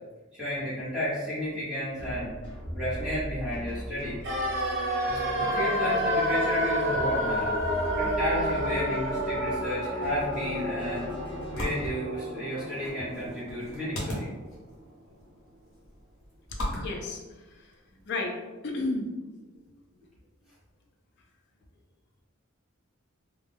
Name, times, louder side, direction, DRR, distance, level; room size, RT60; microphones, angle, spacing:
voice 1, 0.3-2.3 2.7-4.2 5.4-14.3, equal, 5° right, -11 dB, 0.9 m, -32 dB
sound 1, 2.0-11.9, equal, 25° left, 0.9 m, -40 dB
sound 2, 4.2-14.2 14.4-14.5, equal, 60° right, 0.5 m, -30 dB
sound 3, 10.5-18.1, equal, 70° left, 0.8 m, -39 dB
voice 2, 16.8-17.2 18.1-18.4 18.6-19.1, left 2 dB, 55° left, 1 dB, 0.4 m, -31 dB
2.3 x 2.1 x 3.3 m, 1.2 s
head